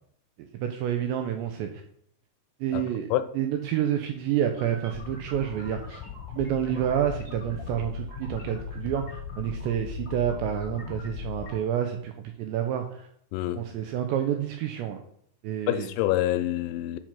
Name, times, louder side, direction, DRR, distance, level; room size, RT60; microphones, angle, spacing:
voice 1, 0.6-1.8 2.6-3.1 3.4-6.0 6.3-12.1 12.4-13.1 13.5-15.0 15.4-15.9, right 10 dB, 85° right, 2.6 m, -29 dB
voice 2, 2.7-3.3 13.3-13.6 15.7-17.0, left 14 dB, 85° left, 2.9 m, -27 dB
sound 1, 4.4-11.5, left 7 dB, 35° left, 1.5 m, -39 dB
6.7 x 5.9 x 5.9 m
omnidirectional pair, 5.7 m